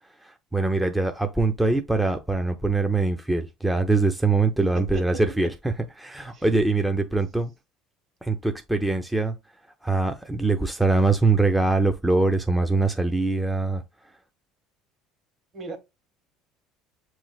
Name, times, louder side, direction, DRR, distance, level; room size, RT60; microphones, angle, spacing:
voice 1, 0.2-7.5 8.2-9.3 9.8-13.8, right 3 dB, 5° right, 0.5 m, -23 dB
voice 2, 6.3-6.6 7.1-7.2 15.5-15.8, right 2 dB, 45° right, 1.7 m, -37 dB
7.0 x 3.1 x 2.3 m
supercardioid pair, 95°, 0 cm